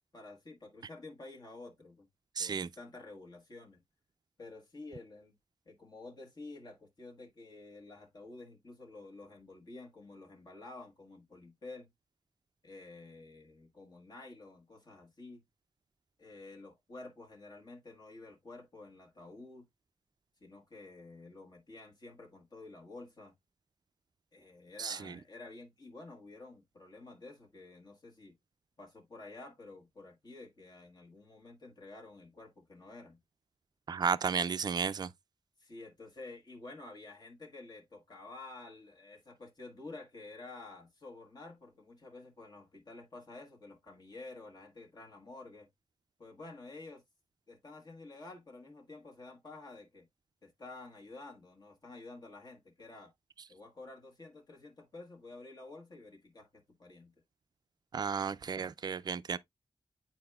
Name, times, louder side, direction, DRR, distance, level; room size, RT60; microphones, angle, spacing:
voice 1, 0.1-2.1 2.4-3.8 4.4-5.3 5.6-11.9 12.6-15.4 16.2-19.7 20.4-23.3 24.3-28.4 28.8-33.2 35.6-45.7 46.2-47.0 47.5-50.1 50.4-53.1 53.5-57.1, left 2 dB, 45° left, 1.4 m, -50 dB
voice 2, 2.4-2.7 24.8-25.1 33.9-35.1 57.9-59.4, right 6 dB, 45° right, 0.3 m, -33 dB
9.7 x 4.4 x 2.2 m
wide cardioid pair, 145°, 10 cm